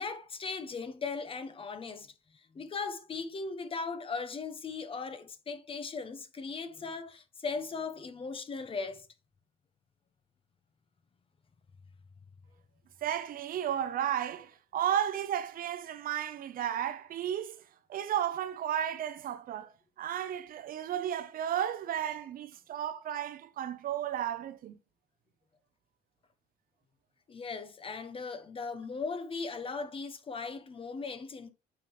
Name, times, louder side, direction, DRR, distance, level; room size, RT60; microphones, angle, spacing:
voice 1, 0.0-2.1 2.5-9.1 27.3-31.5, left 4 dB, 30° left, 1.1 m, -38 dB
voice 2, 13.0-17.6 17.9-24.8, right 10 dB, 60° right, 0.8 m, -33 dB
8.5 x 5.5 x 3.2 m
cardioid pair, 110°, 17 cm